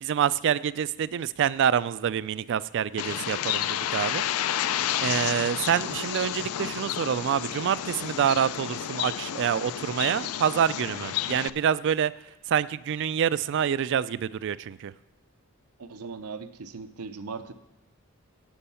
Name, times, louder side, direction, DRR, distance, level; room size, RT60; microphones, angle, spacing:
voice 1, 0.0-12.1 12.5-14.9, right 8 dB, 55° right, 18 dB, 0.3 m, -27 dB
Bird, 3.0-11.5, left 11 dB, 75° left, 0.4 m, -31 dB
voice 2, 15.8-17.5, right 4 dB, 90° right, 10 dB, 0.7 m, -39 dB
15.0 x 5.5 x 5.6 m, 0.95 s
head